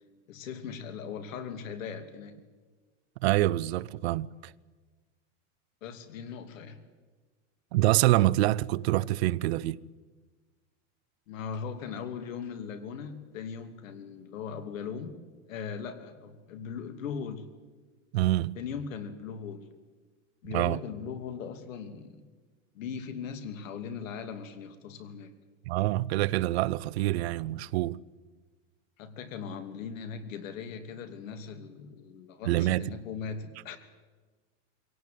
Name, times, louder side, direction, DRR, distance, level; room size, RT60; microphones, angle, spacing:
voice 1, 0.3-2.4 5.8-6.8 11.3-15.2 15.5-17.4 18.6-19.6 20.4-22.3 22.7-25.3 29.0-33.8, left 6 dB, 80° left, 2.8 m, -39 dB
voice 2, 3.2-4.5 7.7-9.8 18.1-18.6 20.5-20.8 25.7-28.0 32.4-32.9, right 16 dB, 55° right, 0.6 m, -26 dB
23.0 x 17.5 x 9.3 m
supercardioid pair, 170°, 39 cm